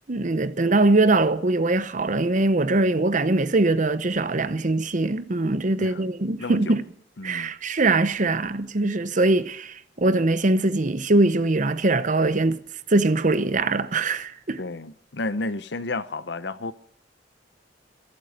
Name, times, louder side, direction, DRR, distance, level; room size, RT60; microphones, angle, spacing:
voice 1, 0.0-6.8 7.2-12.6 12.9-14.6, right 2 dB, 45° right, 0.9 m, -22 dB
voice 2, 6.4-6.7 7.2-7.5 8.8-8.9 14.6-16.7, left 2 dB, 70° left, 0.8 m, -32 dB
22.5 x 8.7 x 6.6 m
head